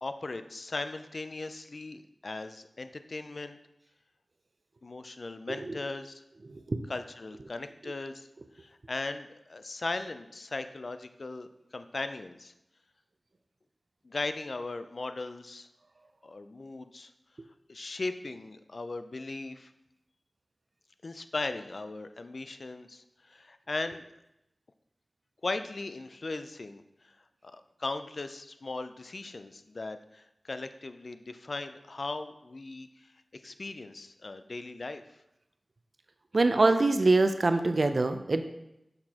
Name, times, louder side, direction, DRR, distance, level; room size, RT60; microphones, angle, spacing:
voice 1, 0.0-3.6 4.8-6.2 6.9-8.3 8.6-11.5 11.7-12.5 14.0-15.7 16.2-17.1 17.7-19.7 21.0-23.0 23.3-24.0 25.4-26.8 27.4-32.9 33.4-35.0, left 3 dB, 65° left, 10 dB, 0.4 m, -38 dB
voice 2, 5.5-5.8 6.4-6.8 7.8-7.9 36.3-38.4, right 2 dB, 60° right, 8 dB, 0.4 m, -25 dB
6.6 x 6.0 x 2.9 m, 0.86 s
wide cardioid pair, 55°, 0 cm